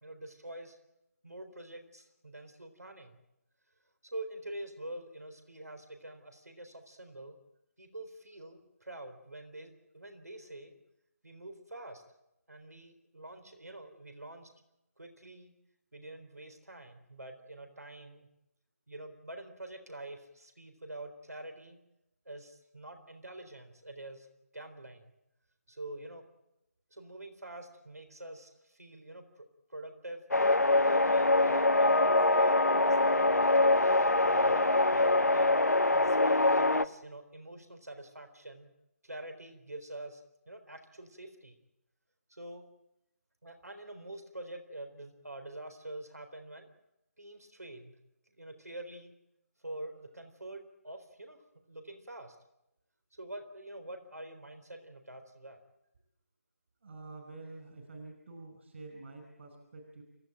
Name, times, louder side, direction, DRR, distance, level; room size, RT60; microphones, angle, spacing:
voice 1, 0.0-0.8 1.2-3.2 4.1-7.4 7.8-10.7 11.2-12.0 12.5-14.5 15.0-15.5 15.9-18.3 18.9-21.8 22.3-24.3 24.5-25.1 25.7-26.2 26.9-30.2 30.8-33.4 34.2-35.6 35.9-38.7 39.0-41.5 42.3-42.6 43.4-46.7 47.2-47.9 48.4-49.1 49.6-51.4 51.7-52.4 53.2-55.6, right 1 dB, 85° right, 7 dB, 3.9 m, -46 dB
sound 1, 30.3-36.9, left 2 dB, 85° left, 1.0 m, -24 dB
voice 2, 56.8-60.0, right 3 dB, 50° right, 4 dB, 5.0 m, -48 dB
29.0 x 15.5 x 9.0 m, 0.88 s
figure-of-eight pair, 150°, 8 cm